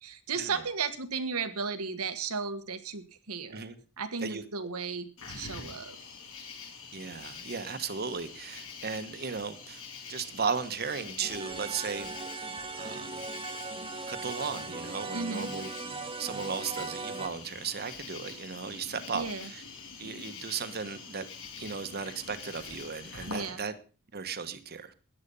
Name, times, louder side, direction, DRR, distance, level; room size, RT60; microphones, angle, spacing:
voice 1, 0.0-3.6 4.0-6.0 15.1-15.5 19.1-19.5 23.2-23.6, right 5 dB, 85° right, 1.5 m, -35 dB
voice 2, 4.2-4.7 6.9-9.8 10.1-12.1 12.7-13.2 14.1-15.7 16.2-19.6 20.0-21.2 21.6-23.7 24.1-24.9, right 5 dB, 45° right, 1.2 m, -36 dB
Cricket, 5.2-23.5, left 5 dB, 65° left, 5.2 m, -45 dB
sound 1, 11.2-17.3, right 4 dB, 25° right, 1.2 m, -39 dB
13.5 x 9.9 x 5.5 m
head